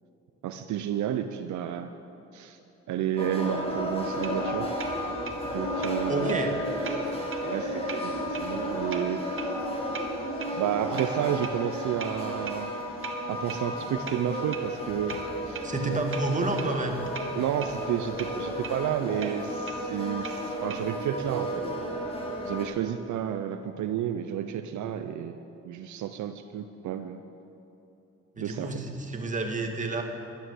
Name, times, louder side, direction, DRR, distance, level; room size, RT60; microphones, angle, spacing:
voice 1, 0.4-1.9 2.3-2.6 2.9-4.7 5.5-6.4 6.9-9.2 10.5-12.7 13.3-15.2 15.5-15.6 17.3-21.7 22.4-25.4 25.6-27.2 28.4-28.8, right 10 dB, 70° right, 8 dB, 0.7 m, -31 dB
sound 1, 3.2-22.7, equal, 20° left, 2.9 m, -33 dB
sound 2, 4.0-20.9, right 5 dB, 45° right, 1.5 m, -44 dB
voice 2, 6.1-6.5 15.6-17.0 28.4-30.0, right 2 dB, 25° right, 2 dB, 1.9 m, -29 dB
12.0 x 10.5 x 7.9 m, 3.0 s
cardioid pair, 90°, 30 cm